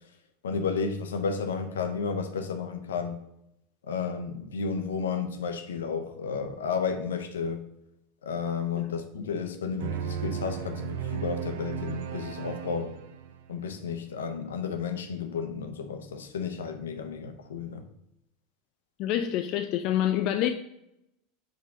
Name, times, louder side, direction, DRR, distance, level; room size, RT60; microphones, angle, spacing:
voice 1, 0.4-3.2 3.9-7.7 8.2-13.0 13.5-17.9, left 5 dB, 75° left, 0.8 m, -32 dB
sound 1, 9.8-13.6, right 8 dB, 60° right, 0.5 m, -35 dB
voice 2, 19.0-20.5, left 11 dB, 50° left, 0.4 m, -27 dB
5.3 x 4.0 x 6.0 m
figure-of-eight pair, 80°, 0 cm